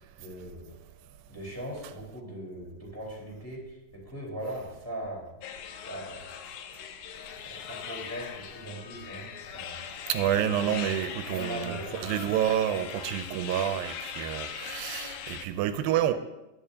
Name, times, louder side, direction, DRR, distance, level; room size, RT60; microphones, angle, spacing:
voice 1, 0.2-0.7 1.3-5.3 5.8-6.3 7.4-9.8 10.4-10.9 11.3-12.0, right 1 dB, 5° left, 3.7 m, -40 dB
sound 1, 5.4-15.5, left 8 dB, 85° left, 2.5 m, -40 dB
voice 2, 10.1-16.1, right 11 dB, 90° right, 2.4 m, -28 dB
19.0 x 11.0 x 2.8 m
omnidirectional pair, 4.1 m